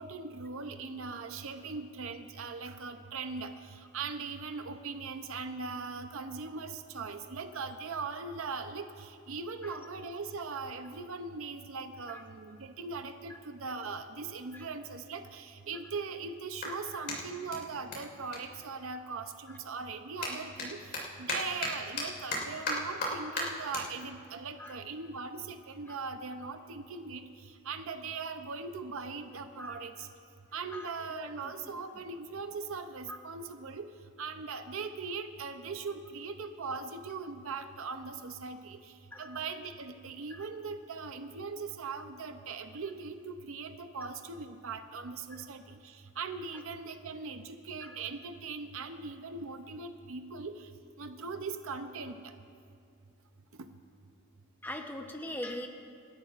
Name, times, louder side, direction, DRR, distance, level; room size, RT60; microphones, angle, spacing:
voice 1, 0.0-30.1 30.5-33.9 34.2-50.7 51.0-52.3 53.6-53.7, right 4 dB, 70° right, 8 dB, 0.6 m, -40 dB
Clapping, 16.5-19.3 19.6-26.2, left 1 dB, 50° left, 4.2 m, -39 dB
voice 2, 30.7-31.3 39.1-39.3 40.3-40.5 45.3-45.4 47.8-48.0 54.6-55.7, left 1 dB, 10° left, 4 dB, 0.8 m, -42 dB
28.0 x 13.0 x 2.5 m, 2.4 s
head